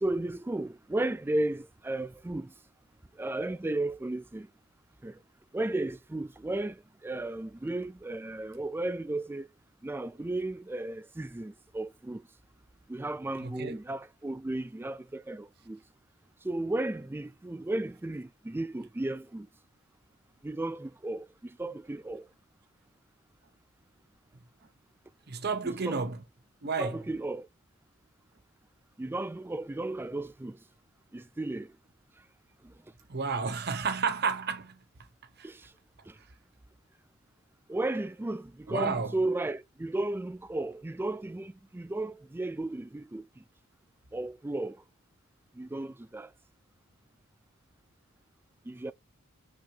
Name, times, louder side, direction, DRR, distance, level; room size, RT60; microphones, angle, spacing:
voice 1, 0.0-2.5 3.2-4.5 5.0-5.2 5.5-6.8 7.0-9.5 9.8-12.2 12.9-15.8 16.4-19.5 20.4-22.2 25.6-26.0 26.8-27.5 29.0-30.6 31.1-31.7 35.4-35.6 37.7-43.2 44.1-44.8 45.6-46.3 48.7-48.9, right 2 dB, 10° right, 0.3 m, -34 dB
voice 2, 13.4-13.7 25.3-26.2 26.6-27.0 33.1-34.8 35.4-35.5 38.7-39.1, right 5 dB, 50° right, 0.8 m, -31 dB
7.0 x 5.7 x 2.9 m
head